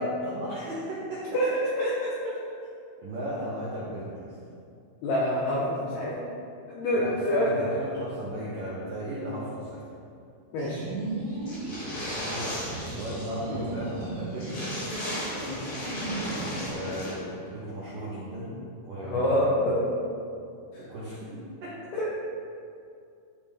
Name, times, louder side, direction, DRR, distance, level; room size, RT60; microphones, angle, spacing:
voice 1, 0.0-1.4 3.0-4.4 6.9-9.8 12.3-12.7 12.9-14.5 16.6-19.6 20.8-21.9, right 1 dB, 80° right, -8 dB, 1.9 m, -36 dB
voice 2, 1.8-2.1 5.0-6.3 6.7-7.8 10.5-10.9 13.5-13.7 15.5-15.7 16.8-16.9 19.0-19.9 21.9-22.2, equal, 80° left, -6 dB, 2.3 m, -27 dB
sound 1, 10.6-16.7, right 2 dB, 60° right, 2.5 m, -36 dB
sound 2, 11.5-13.4 13.6-13.7 14.0-14.1 14.4-17.1, left 1 dB, 50° left, 2.9 m, -35 dB
12.5 x 5.4 x 3.6 m, 2.4 s
omnidirectional pair, 5.9 m